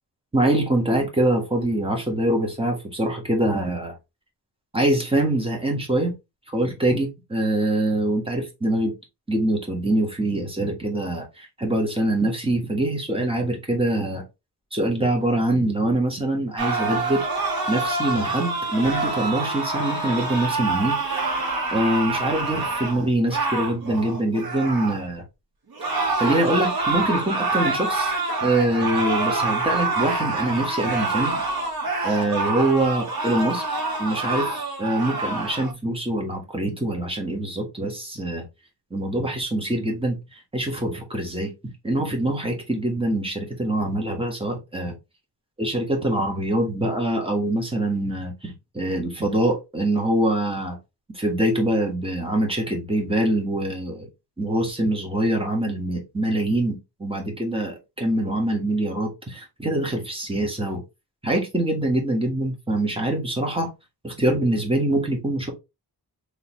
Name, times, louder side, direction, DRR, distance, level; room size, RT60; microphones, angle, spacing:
voice 1, 0.3-3.9 4.7-6.1 6.5-8.9 9.3-14.2 14.7-17.2 17.7-21.2 21.7-25.2 26.2-28.1 28.4-31.4 32.0-33.6 34.0-38.4 38.9-41.5 41.8-44.9 45.6-50.8 51.1-54.1 54.4-60.8 61.2-63.7 64.0-65.5, right 1 dB, 15° right, 1.5 m, -24 dB
sound 1, 16.6-25.0 25.7-35.7, right 3 dB, 65° right, 1.4 m, -26 dB
3.9 x 3.3 x 3.1 m
wide cardioid pair, 100°, 40 cm